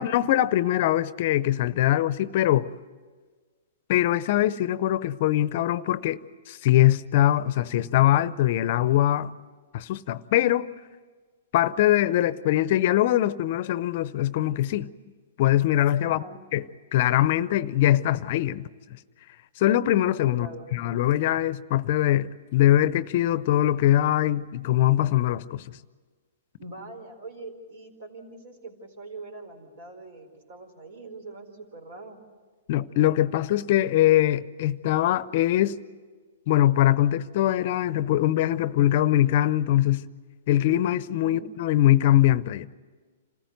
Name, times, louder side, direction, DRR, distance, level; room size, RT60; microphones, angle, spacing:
voice 1, 0.0-2.7 3.9-6.2 6.5-9.3 9.7-10.7 11.5-14.9 15.4-16.2 16.5-16.6 16.9-18.7 19.6-20.5 20.7-25.6 32.7-35.8 36.5-40.0 40.5-42.7, left 13 dB, 50° left, 0.6 m, -22 dB
voice 2, 16.0-16.4 20.3-20.7 26.6-32.2 41.2-41.5, right 2 dB, 60° right, 4.4 m, -43 dB
27.0 x 14.5 x 9.3 m
hypercardioid pair, 135°, 0 cm